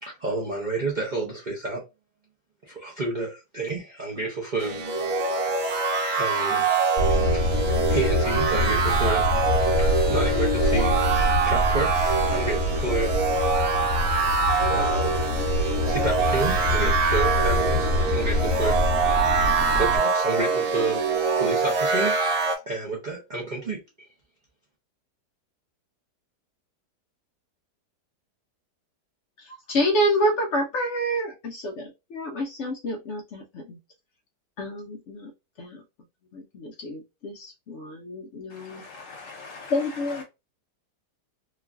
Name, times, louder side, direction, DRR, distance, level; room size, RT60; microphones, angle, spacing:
voice 1, 0.0-1.8 2.7-4.9 6.1-6.8 7.3-7.4 7.9-9.3 9.8-10.9 11.5-13.2 14.7-15.4 15.8-18.8 19.7-24.1, right 3 dB, 80° right, 0.4 m, -30 dB
sound 1, 4.6-22.6, right 4 dB, 60° right, 1.0 m, -24 dB
Motor vehicle (road), 7.0-20.0, left 1 dB, 30° left, 1.2 m, -26 dB
voice 2, 29.4-33.8 34.6-35.3 35.6-35.8 36.3-38.8 39.7-40.2, equal, 80° left, 0.6 m, -28 dB
voice 3, 38.5-40.2, left 3 dB, 55° left, 1.1 m, -42 dB
3.0 x 2.4 x 2.3 m
omnidirectional pair, 1.8 m